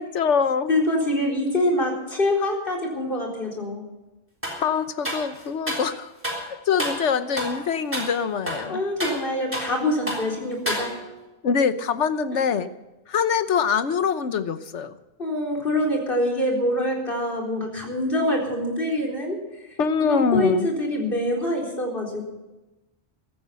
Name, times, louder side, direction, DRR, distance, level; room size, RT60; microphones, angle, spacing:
voice 1, 0.0-0.7 4.6-6.1 6.5-8.8 11.4-12.7 13.1-14.9 19.8-20.7, left 6 dB, 70° left, 11 dB, 1.2 m, -24 dB
voice 2, 0.7-3.9 8.7-10.9 12.3-12.4 15.2-19.4 20.1-22.2, left 1 dB, 45° left, 1 dB, 4.4 m, -25 dB
sound 1, 4.4-4.7 5.0-5.9 6.2-6.5 6.8-7.1 7.4-7.6 7.9-8.1 8.5-9.8 10.1-10.3 10.7-11.2, equal, 10° right, 3.5 m, -30 dB
15.5 x 13.5 x 5.7 m, 1.0 s
omnidirectional pair, 1.2 m